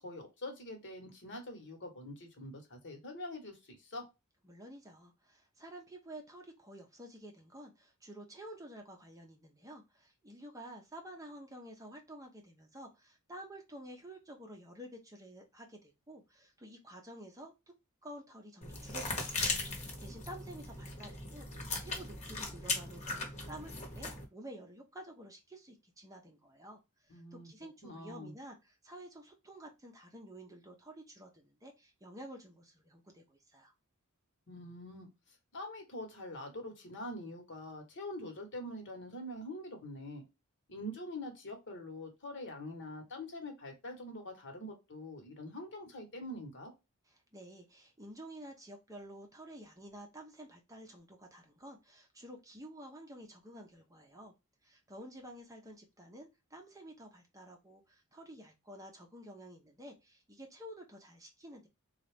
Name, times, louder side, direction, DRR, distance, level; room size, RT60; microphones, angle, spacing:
voice 1, 0.0-4.0 27.1-27.5 27.8-28.3 34.5-40.2 40.7-46.7, left 1 dB, 55° left, 3 dB, 1.2 m, -44 dB
voice 2, 4.4-17.5 18.0-33.7 47.1-54.3 54.6-61.7, right 1 dB, 15° right, 2 dB, 0.7 m, -51 dB
sound 1, 18.6-24.2, left 3 dB, 30° left, 1.1 m, -38 dB
3.9 x 2.4 x 3.3 m, 0.24 s
head